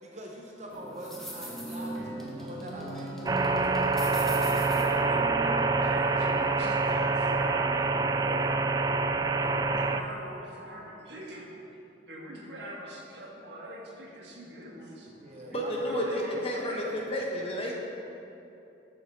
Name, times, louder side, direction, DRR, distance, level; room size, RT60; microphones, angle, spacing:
voice 1, 0.0-3.2 15.1-16.2, right 1 dB, 40° right, -1 dB, 0.9 m, -43 dB
sound 1, 0.7-6.5, right 1 dB, ahead, 1.3 m, -39 dB
sound 2, 3.3-10.0, right 3 dB, 20° right, 0.3 m, -26 dB
voice 2, 4.1-8.9 9.3-11.5 12.1-15.1 15.5-17.0, right 1 dB, 70° right, -3 dB, 2.0 m, -41 dB
voice 3, 15.5-17.7, equal, 35° left, -2 dB, 1.4 m, -31 dB
12.5 x 6.2 x 4.0 m, 2.8 s
head